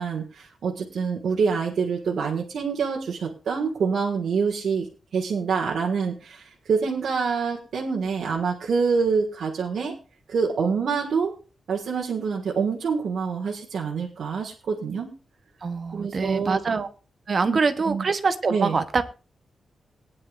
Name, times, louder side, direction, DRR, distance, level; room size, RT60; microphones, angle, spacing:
voice 1, 0.0-4.9 5.1-10.0 10.3-11.3 11.7-15.1 15.9-16.6 17.4-17.6 17.9-18.0 18.5-18.8, right 5 dB, 70° right, -2 dB, 1.8 m, -26 dB
voice 2, 15.6-16.9 17.3-19.0, right 4 dB, 35° right, 10 dB, 0.9 m, -24 dB
20.5 x 9.9 x 2.5 m, 0.33 s
wide cardioid pair, 175°, 0 cm